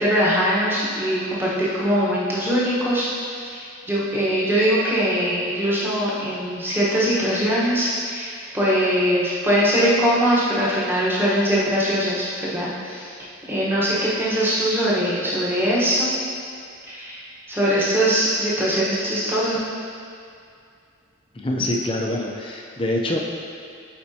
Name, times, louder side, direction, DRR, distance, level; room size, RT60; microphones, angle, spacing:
voice 1, 0.0-13.1 13.5-16.1 16.9-17.2 17.5-19.6, equal, 10° right, -8 dB, 1.1 m, -22 dB
voice 2, 21.3-23.2, left 1 dB, 25° left, -1 dB, 0.5 m, -25 dB
8.7 x 4.3 x 2.8 m, 2.4 s
head